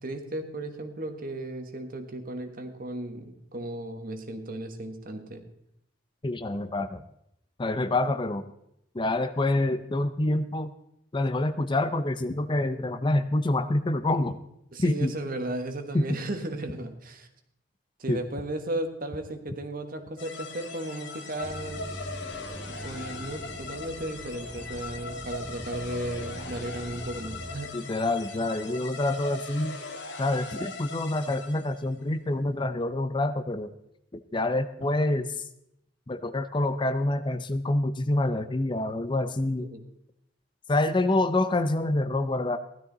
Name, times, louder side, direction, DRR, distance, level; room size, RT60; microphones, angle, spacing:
voice 1, 0.0-5.5 14.7-17.3 18.0-22.0 22.7-27.7 39.6-39.8, right 1 dB, 50° right, 7 dB, 1.5 m, -35 dB
voice 2, 6.2-7.0 7.6-8.4 8.9-10.7 11.1-14.4 14.8-15.1 15.9-16.1 18.1-18.2 27.7-29.8 30.2-33.7 34.1-35.4 36.1-39.7 40.7-42.6, left 2 dB, 25° left, 11 dB, 0.5 m, -27 dB
sound 1, 20.2-31.8, left 3 dB, 65° left, 1.7 m, -40 dB
sound 2, 21.4-27.6, equal, 5° left, 1.1 m, -42 dB
16.0 x 12.5 x 4.0 m, 0.77 s
head